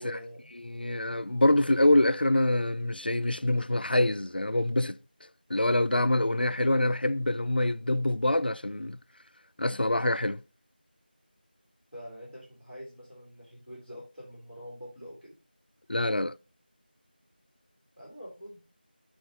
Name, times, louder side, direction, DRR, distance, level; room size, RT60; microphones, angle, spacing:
voice 1, 0.0-0.5 11.9-15.3 18.0-18.6, equal, 5° right, 1.8 m, -45 dB
voice 2, 0.7-5.0 5.5-9.0 9.6-10.4 15.9-16.4, left 1 dB, 65° left, 0.4 m, -25 dB
11.5 x 3.9 x 3.0 m
figure-of-eight pair, 175°, 6 cm